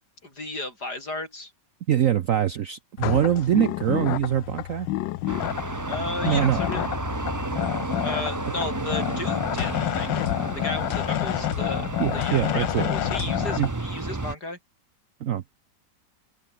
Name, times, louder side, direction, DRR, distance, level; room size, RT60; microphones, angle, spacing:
voice 1, 0.2-1.5 5.9-6.8 8.0-10.1 10.6-14.6, left 2 dB, 60° left, 8.0 m, -34 dB
voice 2, 1.9-4.9 6.3-6.6 12.0-12.9 13.6-13.7 15.2-15.4, right 10 dB, 60° right, 0.9 m, -23 dB
sound 1, 3.0-13.7, left 15 dB, 85° left, 1.4 m, -29 dB
sound 2, 5.3-14.4, right 2 dB, 20° right, 0.5 m, -32 dB
open air
omnidirectional pair, 1.9 m